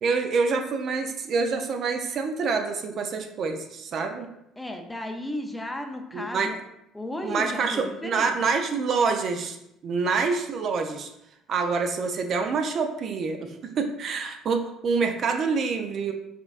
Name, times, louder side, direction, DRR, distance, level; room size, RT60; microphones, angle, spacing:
voice 1, 0.0-4.3 6.1-6.5 7.2-9.6 9.8-11.1 11.5-16.1, right 4 dB, 55° right, 5 dB, 0.4 m, -26 dB
voice 2, 4.6-6.6 6.9-8.3, left 1 dB, 10° left, 4 dB, 0.5 m, -34 dB
4.3 x 3.3 x 2.4 m, 0.82 s
supercardioid pair, 90°, 0 cm